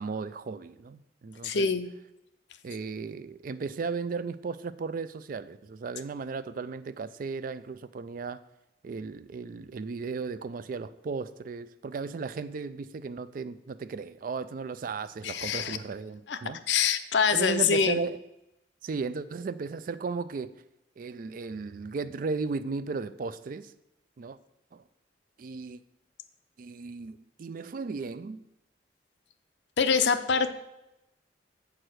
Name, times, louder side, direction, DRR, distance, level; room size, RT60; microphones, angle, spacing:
voice 1, 0.0-1.7 2.6-8.4 8.8-16.6 17.3-18.2 18.8-20.6 21.0-23.7 24.2-24.4 24.7-24.8 25.4-25.8 26.6-28.4, right 4 dB, 45° right, 0.3 m, -35 dB
voice 2, 1.4-1.9 15.2-15.8 16.3-16.4 16.7-18.0 29.8-30.5, left 6 dB, 70° left, 0.6 m, -25 dB
7.4 x 4.8 x 6.2 m
head